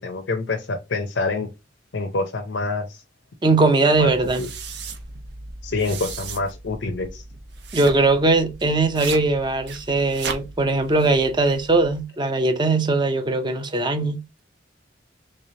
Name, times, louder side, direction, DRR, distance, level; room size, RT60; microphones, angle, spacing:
voice 1, 0.0-1.5 1.9-3.0 4.0-4.5 5.6-7.2, left 3 dB, 80° left, 0.6 m, -27 dB
voice 2, 3.4-4.5 7.7-14.2, right 3 dB, 25° right, 0.6 m, -20 dB
sound 1, 3.9-12.0, right 4 dB, 65° right, 0.7 m, -37 dB
3.5 x 3.2 x 2.6 m
head